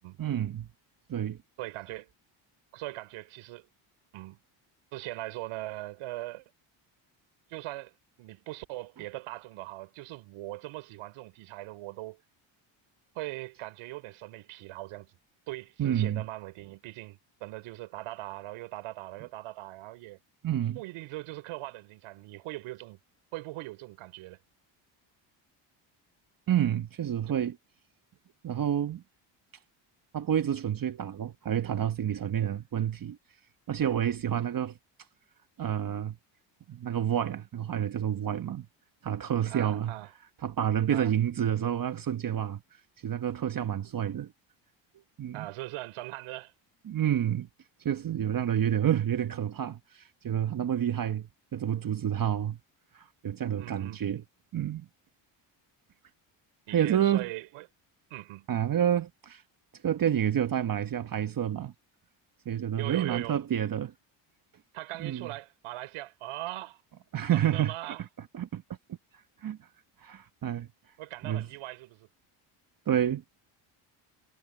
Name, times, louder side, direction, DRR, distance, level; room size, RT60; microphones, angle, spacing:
voice 1, 0.2-0.7 1.1-1.4 15.8-16.2 20.4-20.8 26.5-27.6 28.4-29.0 30.1-33.2 33.7-34.8 35.6-36.2 36.7-38.7 39.0-39.9 40.4-42.6 43.0-44.3 45.2-45.5 46.9-47.5 47.8-52.6 52.9-54.2 54.5-54.8 56.7-57.3 58.5-59.4 59.8-61.7 62.4-63.9 65.0-65.3 67.1-67.9 68.3-68.6 69.4-69.6 70.0-70.7 71.2-71.5 72.9-73.2, right 10 dB, 40° right, 1.2 m, -29 dB
voice 2, 1.6-2.1 2.7-3.7 4.1-4.4 4.9-6.4 7.5-7.9 8.2-12.2 13.2-15.2 15.5-20.2 20.8-23.0 23.3-24.4 27.3-27.4 39.5-40.1 40.9-41.1 45.3-46.5 53.5-54.0 56.7-57.7 58.1-58.5 62.8-63.4 64.7-66.8 67.3-68.0 71.0-72.1, right 18 dB, 85° right, 5.3 m, -40 dB
cardioid pair, 85°, 50 cm